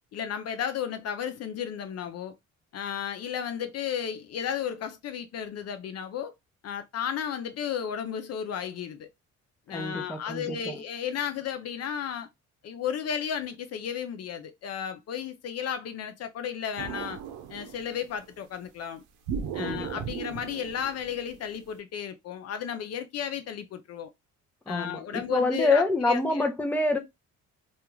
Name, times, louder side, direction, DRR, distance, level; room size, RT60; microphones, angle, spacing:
voice 1, 0.1-2.3 2.7-6.3 6.6-9.1 9.7-12.3 12.6-17.2 17.5-19.0 19.5-24.1 24.7-26.5, left 8 dB, 55° left, 0.4 m, -33 dB
voice 2, 9.7-10.8 19.6-19.9 24.7-27.0, left 2 dB, 5° left, 0.6 m, -26 dB
sound 1, 16.8-18.2 19.3-21.7, right 7 dB, 90° right, 0.6 m, -37 dB
2.4 x 2.2 x 3.0 m
cardioid pair, 90°, 30 cm